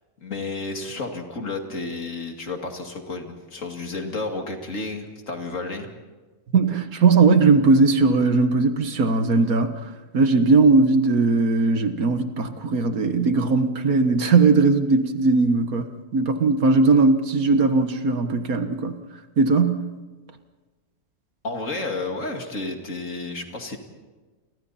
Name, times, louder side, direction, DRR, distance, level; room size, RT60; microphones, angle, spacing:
voice 1, 0.2-5.9 21.4-23.8, left 3 dB, 55° left, 3 dB, 2.7 m, -31 dB
voice 2, 6.5-9.7 10.1-19.0 19.4-19.8, right 3 dB, 70° right, 8 dB, 1.8 m, -19 dB
30.0 x 24.5 x 4.2 m, 1.3 s
omnidirectional pair, 1.6 m